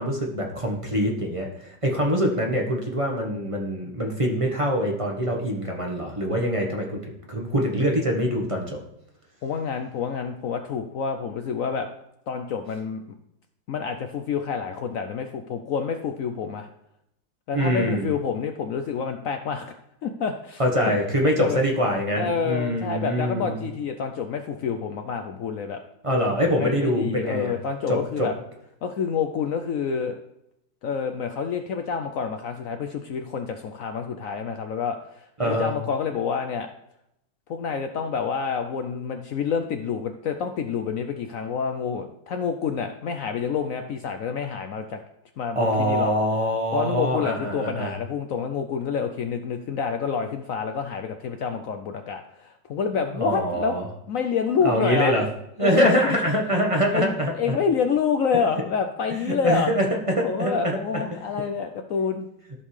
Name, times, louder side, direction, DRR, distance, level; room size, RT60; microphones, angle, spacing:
voice 1, 0.0-8.8 17.5-18.1 20.6-23.6 26.0-27.5 27.9-28.3 35.4-35.7 45.5-47.9 53.2-53.8 54.6-55.2 55.6-57.6 59.3-59.9 60.2-61.0, equal, 20° right, 0 dB, 1.0 m, -24 dB
voice 2, 9.4-11.9 12.3-13.0 13.7-16.7 17.5-19.7 20.0-21.0 21.2-21.6 22.1-25.8 26.6-28.3 28.8-30.2 30.8-36.7 37.5-45.0 45.4-46.1 46.7-53.8 54.1-55.1 55.6-56.2 56.9-59.7 60.2-62.3, left 6 dB, 80° left, 6 dB, 0.7 m, -28 dB
14.0 x 5.4 x 3.2 m, 0.81 s
omnidirectional pair, 2.1 m